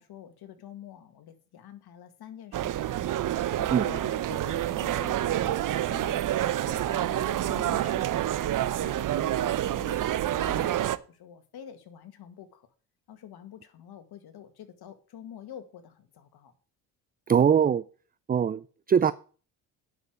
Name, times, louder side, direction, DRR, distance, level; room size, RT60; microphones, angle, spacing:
voice 1, 0.0-2.9 3.6-8.3 8.7-12.7 13.1-16.5, left 10 dB, 60° left, 9 dB, 2.1 m, -47 dB
sound 1, 2.5-11.0, right 12 dB, 45° right, 0.8 m, -28 dB
voice 2, 17.3-17.8 18.3-19.1, right 8 dB, 20° right, 17 dB, 0.5 m, -22 dB
9.8 x 6.6 x 6.6 m, 0.38 s
supercardioid pair, 70°, 43 cm